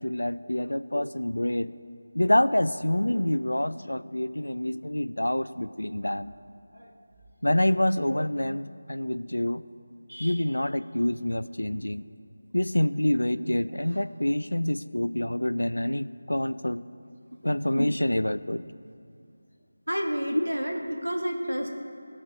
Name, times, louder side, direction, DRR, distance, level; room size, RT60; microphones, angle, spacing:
voice 1, 0.0-1.7 2.1-6.3 7.4-9.6 10.2-12.1 12.5-16.8 17.4-18.6 20.3-20.5, left 1 dB, 75° left, 14 dB, 0.3 m, -27 dB
voice 2, 10.1-10.4 19.9-21.7, equal, 75° right, 2 dB, 1.4 m, -30 dB
17.0 x 5.8 x 4.6 m, 2.6 s
figure-of-eight pair, 165°, 0 cm